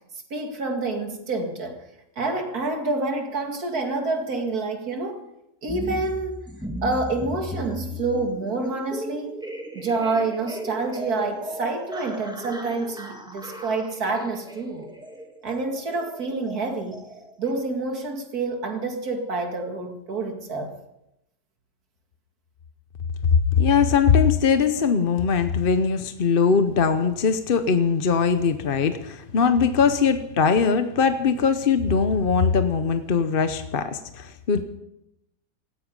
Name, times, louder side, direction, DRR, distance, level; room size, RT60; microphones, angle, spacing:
voice 1, 0.3-1.8 2.2-5.2 5.6-6.4 6.8-9.4 9.7-14.9 15.4-17.0 17.4-20.7, right 3 dB, 80° right, 4 dB, 2.7 m, -28 dB
sound 1, 5.7-17.5, right 1 dB, 5° right, 1.8 m, -37 dB
voice 2, 23.6-34.6, left 6 dB, 45° left, 9 dB, 0.9 m, -21 dB
18.0 x 15.0 x 5.4 m, 0.86 s
omnidirectional pair, 1.6 m